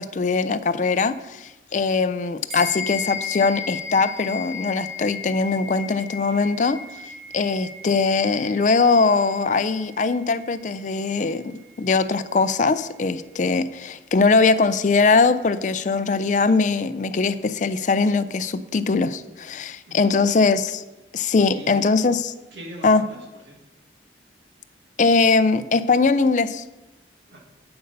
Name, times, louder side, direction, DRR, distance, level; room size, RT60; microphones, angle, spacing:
voice 1, 0.0-6.8 7.3-20.8 21.1-22.3 22.8-23.0 25.0-26.6, left 4 dB, 40° left, 13 dB, 0.4 m, -21 dB
sound 1, 2.5-12.2, left 6 dB, 50° right, 3.9 m, -36 dB
voice 2, 21.4-21.8 22.5-23.6 27.3-27.4, equal, 75° right, 0 dB, 1.9 m, -41 dB
8.0 x 7.9 x 5.3 m, 1.0 s
head